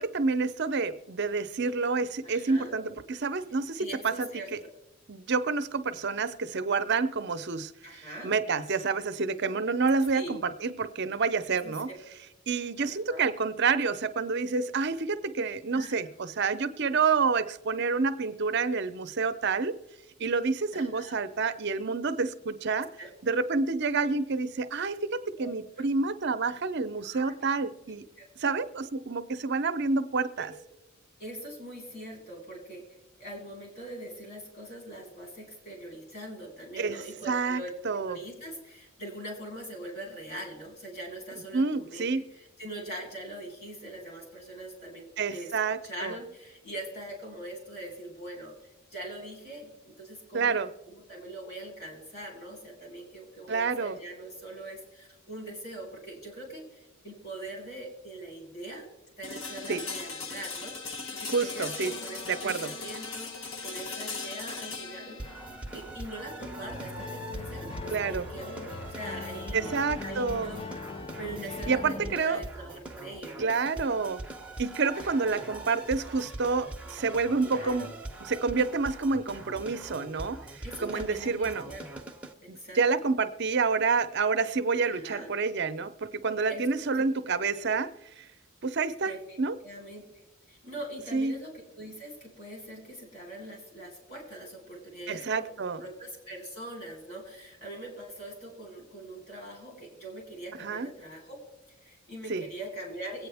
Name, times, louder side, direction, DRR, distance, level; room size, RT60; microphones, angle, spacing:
voice 1, 0.0-4.6 5.1-11.9 12.5-19.8 20.2-22.9 23.2-28.0 28.4-30.5 36.8-38.2 41.5-42.2 45.2-46.2 50.3-50.7 53.5-54.0 59.7-59.8 61.3-61.9 62.3-62.7 67.9-68.3 69.5-70.5 71.7-72.4 73.4-74.2 74.6-77.9 78.2-81.7 82.5-87.9 88.2-88.3 88.6-89.6 91.1-91.3 95.1-95.8 100.6-100.9 102.3-102.4, right 4 dB, 55° right, 11 dB, 0.6 m, -28 dB
voice 2, 2.2-2.7 3.8-4.5 7.8-8.3 10.1-10.4 11.6-11.8 12.8-13.3 15.7-16.0 20.7-21.1 23.0-23.1 25.4-25.5 25.8-25.9 27.0-27.3 28.2-28.3 30.4-30.5 31.2-32.8 33.2-45.5 45.8-48.5 48.9-58.9 59.2-63.3 63.6-65.2 65.7-69.7 70.0-70.7 71.2-73.5 74.9-75.4 77.4-77.9 80.6-81.8 82.5-82.8 84.9-85.3 86.5-87.0 87.5-87.6 89.0-95.5 95.7-101.4 101.8-103.3, right 1 dB, 50° left, 0 dB, 4.2 m, -42 dB
sound 1, 59.2-69.1, left 4 dB, 75° left, 1.2 m, -40 dB
sound 2, 65.2-82.3, right 2 dB, 5° right, 0.8 m, -42 dB
sound 3, 66.4-72.2, left 4 dB, 25° left, 0.4 m, -40 dB
23.0 x 8.8 x 3.4 m, 0.95 s
head